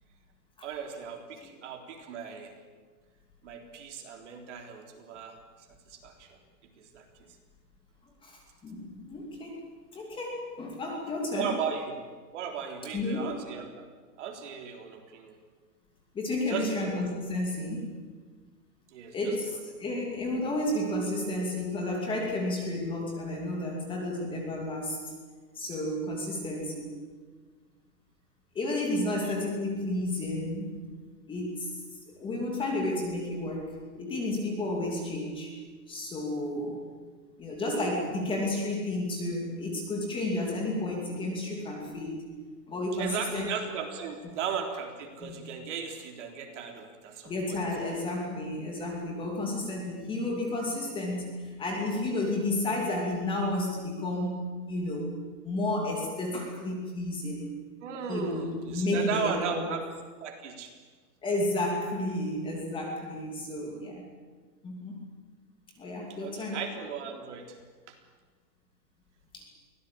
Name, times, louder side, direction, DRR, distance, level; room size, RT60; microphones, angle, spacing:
voice 1, 0.6-2.5 3.4-5.4 5.9-6.4 6.8-7.1 11.4-12.0 12.3-13.9 14.2-15.4 16.5-17.0 18.9-19.4 42.9-47.6 57.8-59.9 60.2-60.7 63.6-63.8 66.2-67.6 67.9-68.0, right 7 dB, 45° right, 3 dB, 3.8 m, -36 dB
voice 2, 8.2-9.6 9.9-11.5 12.9-13.3 16.1-18.0 19.1-19.5 19.8-25.0 25.5-27.0 28.5-30.8 31.3-31.7 32.1-35.5 35.9-36.8 37.4-42.3 42.7-43.5 45.2-45.4 47.3-54.4 54.7-55.1 55.4-57.5 58.1-59.7 61.2-64.0 64.6-65.0 65.8-66.6 69.3-69.4, left 1 dB, 10° left, 0 dB, 2.7 m, -32 dB
23.5 x 17.5 x 8.7 m, 1.5 s
hypercardioid pair, 165°, 48 cm